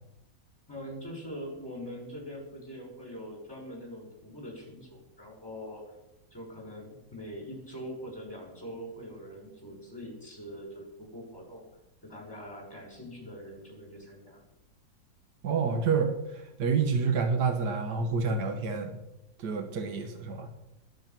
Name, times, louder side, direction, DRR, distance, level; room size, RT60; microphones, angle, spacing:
voice 1, 0.7-5.8 6.3-11.6 12.0-14.4, equal, 10° left, -1 dB, 6.2 m, -43 dB
voice 2, 15.4-19.0 19.4-20.5, right 5 dB, 65° right, 6 dB, 1.9 m, -28 dB
21.0 x 8.9 x 6.0 m, 0.94 s
omnidirectional pair, 1.9 m